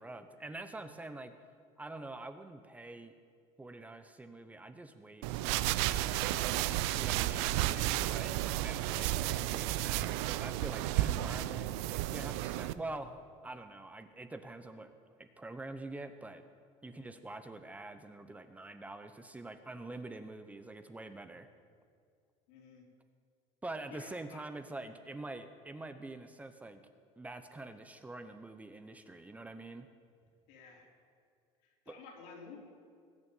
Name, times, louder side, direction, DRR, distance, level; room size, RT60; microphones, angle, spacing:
voice 1, 0.0-1.3 1.8-3.1 3.6-6.5 7.0-14.9 15.2-16.4 16.8-21.5 23.6-26.8 27.2-29.9 31.9-32.0, right 2 dB, 10° right, 9 dB, 0.8 m, -46 dB
sound 1, 5.2-12.7, right 14 dB, 85° right, 0.6 m, -32 dB
voice 2, 22.5-22.8 23.9-24.4 30.5-30.9 31.6-32.6, left 5 dB, 85° left, -1 dB, 4.2 m, -53 dB
19.5 x 6.9 x 9.2 m, 2.2 s
cardioid pair, 140°, 14 cm